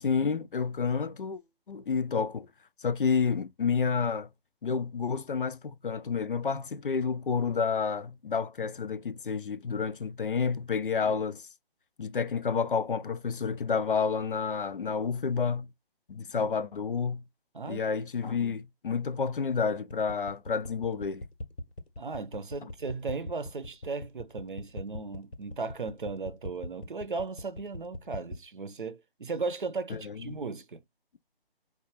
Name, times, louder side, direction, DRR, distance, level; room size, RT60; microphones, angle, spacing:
voice 1, 0.0-1.4 1.7-2.5 2.8-4.3 4.6-11.5 12.0-15.7 16.1-17.2 17.7-21.3 22.6-22.7 29.9-30.4, left 5 dB, 60° left, 0.4 m, -30 dB
sound 1, 19.9-28.4, left 1 dB, 90° left, 0.9 m, -40 dB
voice 2, 22.0-30.8, right 4 dB, 55° right, 0.7 m, -36 dB
4.7 x 2.3 x 2.9 m
figure-of-eight pair, 150°, 30 cm